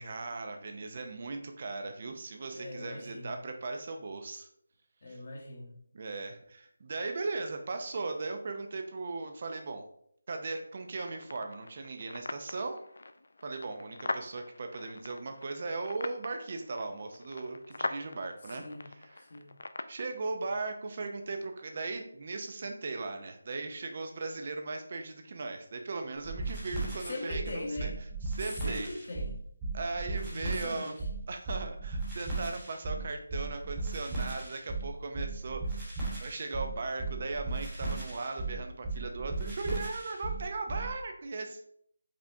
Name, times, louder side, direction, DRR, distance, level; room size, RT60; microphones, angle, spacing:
voice 1, 0.0-4.5 5.1-5.2 5.9-9.9 10.3-12.8 13.4-19.3 19.9-27.9 28.3-28.9 29.7-30.9 31.3-41.7, right 3 dB, 30° right, 5 dB, 0.4 m, -38 dB
voice 2, 2.5-3.4 5.0-5.8 18.5-18.9 19.2-19.5 27.1-28.0 28.6-29.3 30.3-31.0, left 2 dB, 35° left, 1 dB, 0.9 m, -40 dB
sound 1, 10.9-20.0, left 2 dB, 60° left, 0.3 m, -42 dB
sound 2, 26.2-40.9, right 3 dB, 10° right, 1.1 m, -36 dB
5.0 x 3.4 x 2.6 m, 0.67 s
figure-of-eight pair, 175°, 0 cm